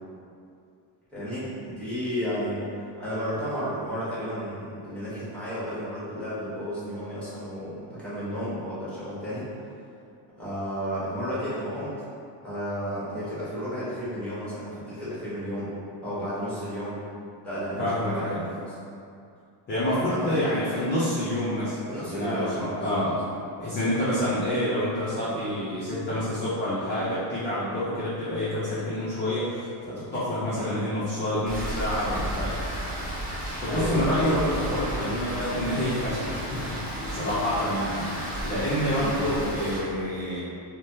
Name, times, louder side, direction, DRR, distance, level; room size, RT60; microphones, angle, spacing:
voice 1, 1.1-9.5 10.4-11.9 12.4-15.7 16.0-17.0 17.4-18.8 19.8-20.6 21.9-23.3 30.6-30.8 33.7-34.4 38.9-39.2, equal, ahead, -11 dB, 1.0 m, -32 dB
voice 2, 17.8-18.5 19.7-23.1 23.6-32.6 33.6-38.1 38.4-40.4, equal, 25° left, -11 dB, 0.5 m, -28 dB
Rain, 31.5-39.8, equal, 15° right, 0.8 m, -33 dB
3.1 x 2.1 x 2.7 m, 2.5 s
cardioid pair, 135°, 49 cm